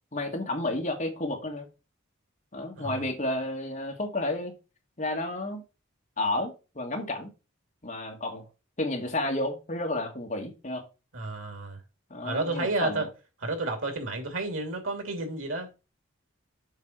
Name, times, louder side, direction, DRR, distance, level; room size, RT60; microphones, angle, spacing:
voice 1, 0.1-1.7 2.5-4.5 5.0-5.6 6.2-7.3 7.8-8.4 8.8-10.8 12.1-13.0, left 2 dB, 35° left, 1.9 m, -31 dB
voice 2, 11.1-11.8 12.2-13.1 13.4-15.7, right 2 dB, 85° right, 2.7 m, -31 dB
7.4 x 4.9 x 4.4 m
head